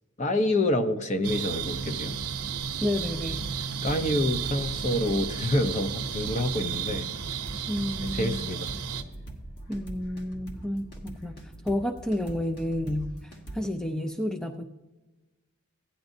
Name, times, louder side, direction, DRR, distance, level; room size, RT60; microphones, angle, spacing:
voice 1, 0.2-2.1 3.8-7.1 8.1-8.7, left 1 dB, 35° left, 7 dB, 0.7 m, -27 dB
sound 1, 1.2-9.0, right 7 dB, 85° right, 0.7 m, -33 dB
voice 2, 2.8-3.5 7.7-8.4 9.7-14.6, left 1 dB, 5° left, 5 dB, 0.4 m, -31 dB
sound 2, 3.0-13.6, right 2 dB, 50° left, 1.4 m, -42 dB
16.0 x 10.0 x 2.7 m, 1.1 s
head